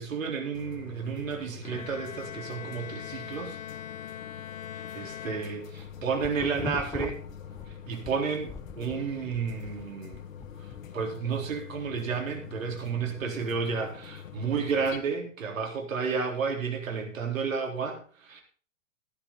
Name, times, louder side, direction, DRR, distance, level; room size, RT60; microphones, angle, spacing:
voice 1, 0.0-3.6 5.0-7.2 7.9-10.2 10.9-18.4, right 5 dB, 80° right, 3 dB, 4.1 m, -31 dB
sound 1, 0.5-15.0, left 8 dB, 75° left, 2.0 m, -45 dB
Bowed string instrument, 1.6-6.1, left 10 dB, 45° left, 1.5 m, -42 dB
sound 2, 5.6-8.1 8.5-10.9, left 4 dB, 10° left, 0.7 m, -39 dB
14.5 x 11.5 x 4.1 m, 0.40 s
hypercardioid pair, 115°, 39 cm